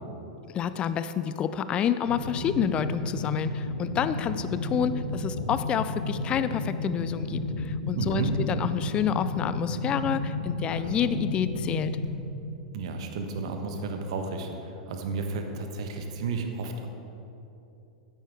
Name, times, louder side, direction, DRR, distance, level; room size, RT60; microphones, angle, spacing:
voice 1, 0.5-11.9, left 8 dB, 25° left, 13 dB, 0.5 m, -28 dB
sound 1, 2.1-12.1, left 2 dB, 80° left, 1.2 m, -32 dB
voice 2, 7.9-8.3 12.7-16.9, right 4 dB, 55° right, 5 dB, 1.2 m, -32 dB
12.5 x 10.0 x 3.5 m, 2.9 s
figure-of-eight pair, 90°, 4 cm